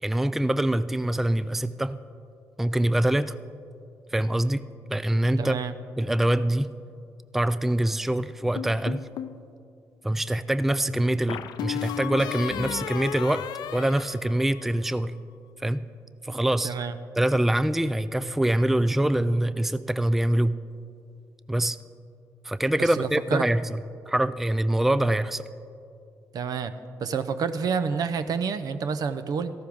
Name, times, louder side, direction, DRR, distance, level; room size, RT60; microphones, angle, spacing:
voice 1, 0.0-2.0 2.6-3.4 4.1-4.6 4.9-5.6 6.0-6.7 7.3-9.0 10.0-13.5 13.7-15.1 15.6-15.8 16.2-16.7 17.2-20.6 21.5-21.8 22.4-25.4, right 1 dB, 5° right, 14 dB, 0.3 m, -24 dB
voice 2, 5.4-5.7 16.6-16.9 22.8-23.5 26.3-26.7 27.0-29.5, right 6 dB, 60° right, 11 dB, 0.6 m, -28 dB
sound 1, 8.6-9.4 11.3-14.9, left 10 dB, 80° left, 0.4 m, -34 dB
14.0 x 12.5 x 3.5 m, 2.5 s
supercardioid pair, 65°, 7 cm